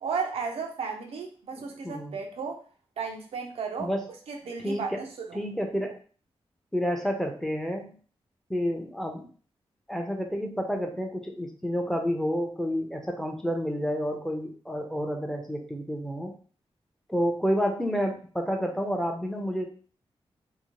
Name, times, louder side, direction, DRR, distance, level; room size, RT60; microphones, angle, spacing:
voice 1, 0.0-2.6 3.0-3.9 4.3-5.4, right 5 dB, 90° right, 2 dB, 0.5 m, -34 dB
voice 2, 1.6-2.2 3.8-4.1 4.6-5.0 5.3-6.0 6.7-8.0 8.5-9.3 9.9-16.3 17.1-19.7, equal, 5° left, 2 dB, 0.5 m, -30 dB
2.7 x 2.1 x 2.9 m, 0.40 s
wide cardioid pair, 85°, 10 cm